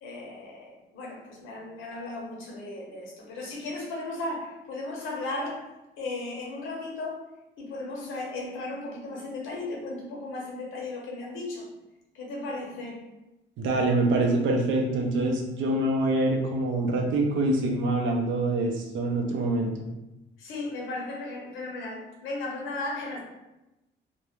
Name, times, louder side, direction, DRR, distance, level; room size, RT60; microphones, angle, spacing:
voice 1, 0.0-5.7 6.0-7.2 7.6-11.7 12.1-13.0 20.4-23.2, left 2 dB, 90° left, -2 dB, 0.8 m, -36 dB
voice 2, 13.6-19.7, right 2 dB, 75° right, 2 dB, 0.6 m, -25 dB
2.5 x 2.1 x 3.1 m, 0.97 s
cardioid pair, 90°, 20 cm